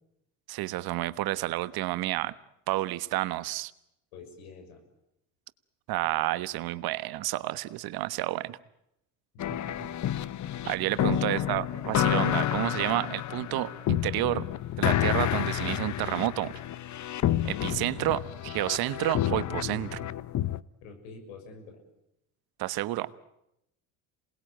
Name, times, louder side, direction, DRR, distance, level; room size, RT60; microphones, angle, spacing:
voice 1, 0.5-2.3 2.7-3.7 5.9-8.6 10.6-14.5 14.8-16.5 17.4-20.0 22.6-23.1, right 16 dB, 65° right, 15 dB, 1.3 m, -30 dB
voice 2, 4.1-4.8 9.3-9.9 11.0-11.2 20.8-21.8, left 3 dB, 85° left, 6 dB, 6.5 m, -46 dB
sound 1, 9.4-20.6, left 12 dB, 45° left, 1.0 m, -30 dB
27.0 x 20.0 x 9.0 m, 0.84 s
supercardioid pair, 75°, 40 cm